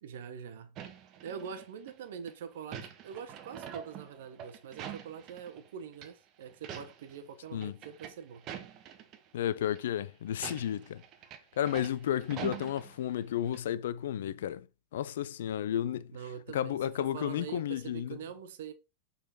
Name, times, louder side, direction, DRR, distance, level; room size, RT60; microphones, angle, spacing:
voice 1, 0.0-0.8 1.2-8.4 16.1-18.7, right 7 dB, 55° right, 1.0 m, -44 dB
sound 1, 0.8-1.9 2.3-5.7 5.9-6.1 6.5-7.2 7.4-9.2 9.6-9.8 10.3-13.3 13.5-13.6, right 9 dB, 35° right, 1.1 m, -45 dB
voice 2, 9.3-11.0 11.6-14.7 14.9-16.2 16.5-18.2, left 10 dB, 60° left, 0.4 m, -32 dB
6.8 x 4.0 x 4.2 m
figure-of-eight pair, 90°, 0 cm